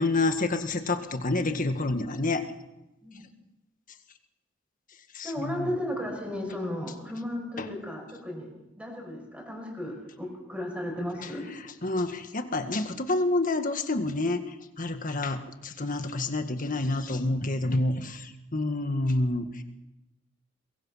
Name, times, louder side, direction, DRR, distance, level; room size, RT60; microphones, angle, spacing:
voice 1, 0.0-2.4 5.1-5.7 7.6-7.7 11.2-11.3 11.8-19.6, left 2 dB, 45° left, 7 dB, 1.7 m, -28 dB
voice 2, 5.2-8.5 8.8-11.5, left 1 dB, 5° right, 2 dB, 5.9 m, -34 dB
23.0 x 22.0 x 5.7 m, 0.92 s
head